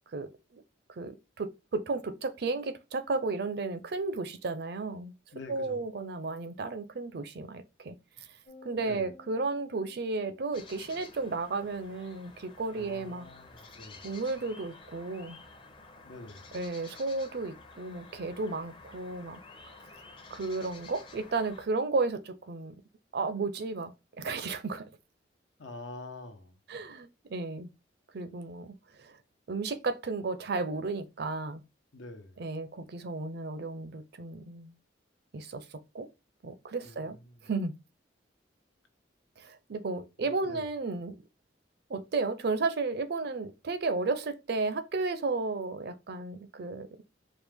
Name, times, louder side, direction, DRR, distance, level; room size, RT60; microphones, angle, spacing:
voice 1, 0.1-0.6 0.9-5.1 5.5-8.3 8.6-13.3 14.0-15.4 16.5-19.4 20.3-22.8 23.1-24.9 26.7-27.7 28.1-29.2 29.5-31.6 32.4-34.7 35.3-36.1 36.4-37.2 37.4-37.7 39.4-41.2 41.9-47.0, right 3 dB, 60° right, 0.5 m, -33 dB
voice 2, 5.3-5.8 8.8-9.1 12.7-14.1 16.0-16.6 25.6-26.6 31.9-32.4 36.8-37.5 40.2-40.7, left 2 dB, 80° left, 0.9 m, -46 dB
sound 1, 8.4-11.0, left 2 dB, 45° left, 1.1 m, -54 dB
sound 2, 10.5-21.7, left 3 dB, 30° left, 0.6 m, -51 dB
4.4 x 2.4 x 3.4 m
head